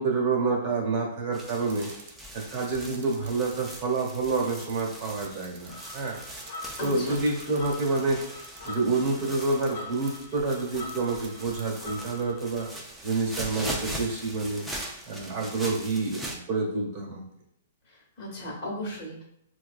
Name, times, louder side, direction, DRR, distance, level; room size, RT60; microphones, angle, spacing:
voice 1, 0.0-1.9 2.3-6.2 6.8-8.2 8.6-12.7 13.0-14.6 15.0-17.2, right 3 dB, 30° right, -2 dB, 1.1 m, -28 dB
sound 1, 1.3-16.4, right 1 dB, ahead, 0.4 m, -41 dB
sound 2, 1.7-2.1 2.7-3.7 4.6-8.8 9.5-9.7 10.1-10.2 10.5-10.6 10.9-11.3 11.6-11.7, right 7 dB, 65° right, 0.7 m, -46 dB
sound 3, 5.7-12.7, left 2 dB, 50° left, 0.8 m, -44 dB
voice 2, 6.8-7.2 17.9-19.2, left 1 dB, 30° left, -4 dB, 1.3 m, -36 dB
5.8 x 2.3 x 2.4 m, 0.73 s
hypercardioid pair, 170°, 0 cm